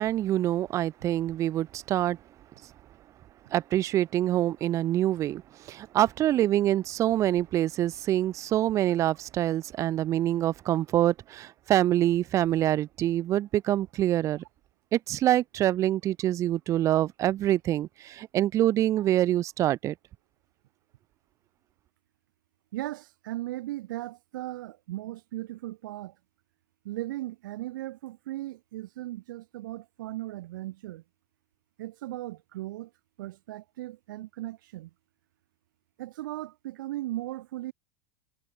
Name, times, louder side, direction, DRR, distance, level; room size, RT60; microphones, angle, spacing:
voice 1, 0.0-2.2 3.5-5.4 5.7-14.4 14.9-19.9, right 13 dB, 30° right, 0.5 m, -25 dB
voice 2, 22.7-26.1 26.8-31.0 31.8-32.9 33.2-34.9 36.0-37.7, right 16 dB, 75° right, 4.5 m, -37 dB
supercardioid pair, 145°, 11 cm